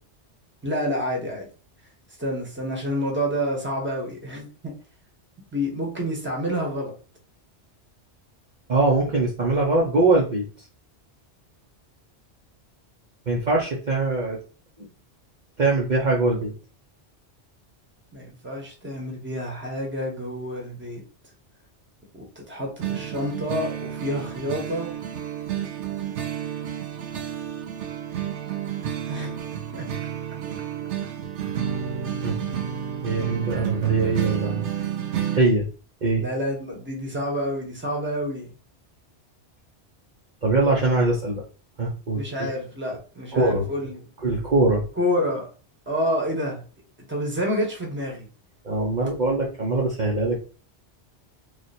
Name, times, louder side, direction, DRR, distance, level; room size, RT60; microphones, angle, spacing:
voice 1, 0.6-1.5 2.2-4.7 5.5-6.9 18.1-21.0 22.1-24.9 29.1-29.4 29.7-29.9 31.0-31.1 36.2-38.5 42.1-44.1 45.0-45.5 45.9-46.6 47.1-48.3, equal, 10° right, 0 dB, 1.0 m, -28 dB
voice 2, 8.7-10.4 13.3-14.4 15.6-16.5 32.2-32.4 33.0-34.6 35.3-35.7 36.0-36.2 40.4-41.4 41.8-42.5 43.3-43.7 44.2-44.8 48.6-50.4, right 2 dB, 45° right, -4 dB, 0.8 m, -22 dB
sound 1, 22.8-35.4, right 9 dB, 85° right, 1.0 m, -30 dB
3.2 x 2.4 x 4.2 m, 0.36 s
omnidirectional pair, 1.2 m